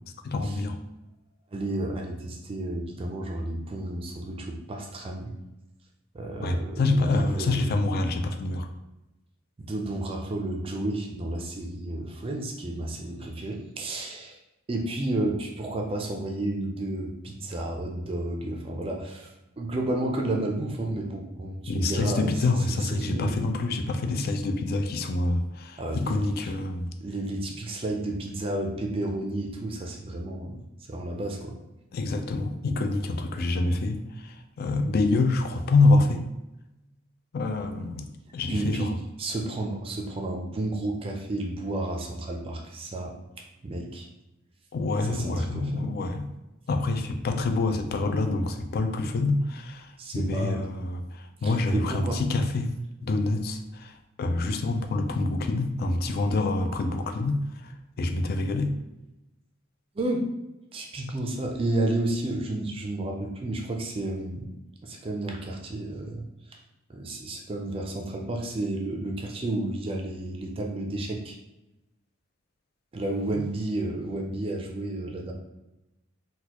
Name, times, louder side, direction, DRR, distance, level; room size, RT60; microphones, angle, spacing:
voice 1, 0.2-0.8 6.4-8.7 21.7-26.9 31.9-36.3 37.3-38.1 38.3-39.0 44.7-46.3 46.7-52.7 53.0-57.7 58.0-58.8 73.3-73.4, left 2 dB, 50° left, 7 dB, 0.3 m, -26 dB
voice 2, 1.5-5.3 6.1-7.7 9.6-14.4 14.7-22.3 22.7-23.4 25.8-26.3 27.0-30.6 30.9-31.6 38.5-38.9 39.2-43.1 43.6-44.0 45.1-45.8 50.0-50.6 51.4-52.2 56.6-56.8 59.9-60.3 60.7-64.6 64.8-66.6 66.9-71.4 72.9-75.3, right 1 dB, 25° right, 1 dB, 0.4 m, -31 dB
4.0 x 2.2 x 2.9 m, 0.97 s
head